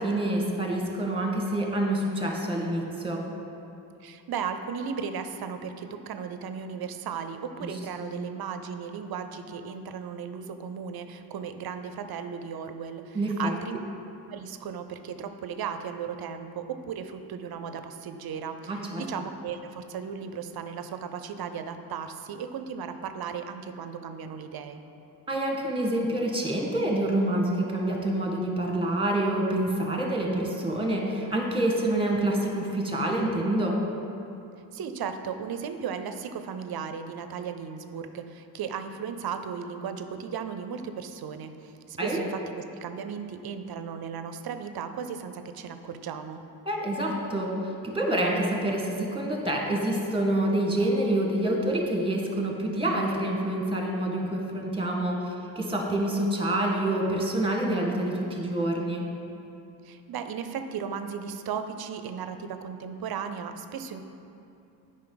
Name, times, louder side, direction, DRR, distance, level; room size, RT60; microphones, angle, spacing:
voice 1, 0.0-3.2 7.6-7.7 8.0-8.1 13.1-13.5 18.7-19.0 25.3-33.8 42.0-42.2 46.6-47.5 47.8-59.1, right 1 dB, 10° right, 0 dB, 1.5 m, -27 dB
voice 2, 4.0-13.8 14.3-24.8 34.7-46.4 59.8-64.0, right 7 dB, 55° right, 9 dB, 0.6 m, -36 dB
8.5 x 5.4 x 3.9 m, 2.7 s
cardioid pair, 70°, 44 cm